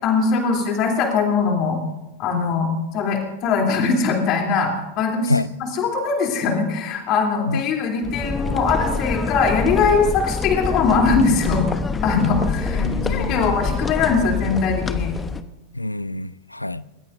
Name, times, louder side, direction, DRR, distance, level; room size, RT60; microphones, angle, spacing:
voice 1, 0.0-1.8 2.2-5.3 5.6-11.6 12.0-15.1, left 4 dB, 35° left, 1 dB, 3.2 m, -21 dB
sound 1, 8.0-15.4, left 4 dB, 15° left, 0.9 m, -26 dB
voice 2, 12.8-13.6 15.7-16.8, left 2 dB, 85° left, 18 dB, 0.5 m, -26 dB
30.0 x 15.0 x 2.6 m, 0.97 s
figure-of-eight pair, 90°, 0 cm